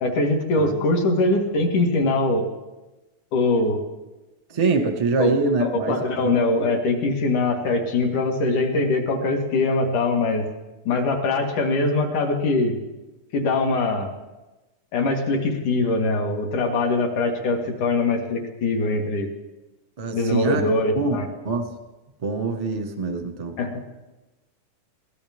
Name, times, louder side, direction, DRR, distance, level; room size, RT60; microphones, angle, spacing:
voice 1, 0.0-2.4 3.3-3.8 5.2-5.3 5.6-10.4 10.9-12.8 13.3-14.1 14.9-19.3 20.1-21.3 23.6-23.8, left 2 dB, 70° left, 2 dB, 3.3 m, -22 dB
voice 2, 4.5-5.9 6.2-6.3 6.6-6.7 20.0-20.6 20.9-21.2 21.4-21.6 22.2-23.6, right 4 dB, 30° right, 4 dB, 0.7 m, -24 dB
22.0 x 18.0 x 3.6 m, 1.1 s
omnidirectional pair, 3.6 m